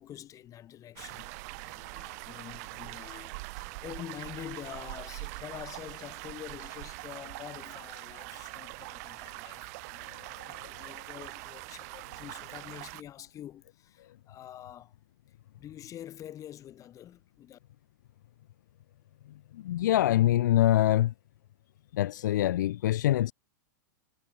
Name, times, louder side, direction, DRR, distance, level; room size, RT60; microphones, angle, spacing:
voice 1, 0.0-14.9 15.6-17.6, left 11 dB, 30° left, 6.0 m, -46 dB
sound 1, 1.0-13.0, right 26 dB, 55° right, 2.0 m, -43 dB
voice 2, 10.5-10.9 19.5-21.1 21.9-23.3, left 13 dB, 70° left, 1.4 m, -25 dB
hypercardioid pair, 105°, 10 cm